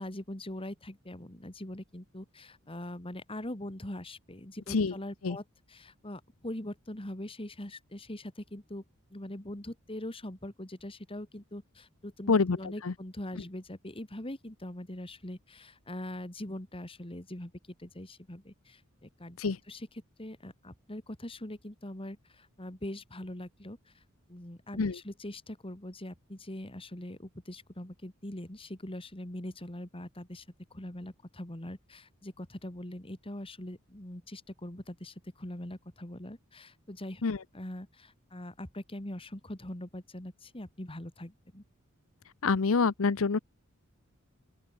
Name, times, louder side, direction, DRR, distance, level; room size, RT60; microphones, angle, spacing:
voice 1, 0.0-8.8 9.1-17.5 17.8-19.4 19.7-19.9 20.2-23.8 24.3-30.4 30.7-37.2 37.5-41.6, left 1 dB, 25° left, 2.5 m, -42 dB
voice 2, 42.4-43.4, left 4 dB, 70° left, 0.7 m, -26 dB
open air
head